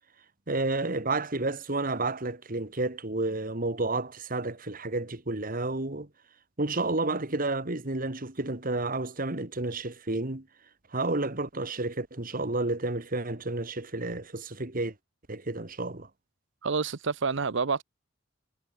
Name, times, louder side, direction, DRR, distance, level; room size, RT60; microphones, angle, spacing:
voice 1, 0.5-6.1 6.6-10.5 10.9-14.9 15.3-16.1, right 2 dB, 45° right, 2.2 m, -31 dB
voice 2, 16.6-17.8, right 5 dB, 65° right, 0.8 m, -28 dB
head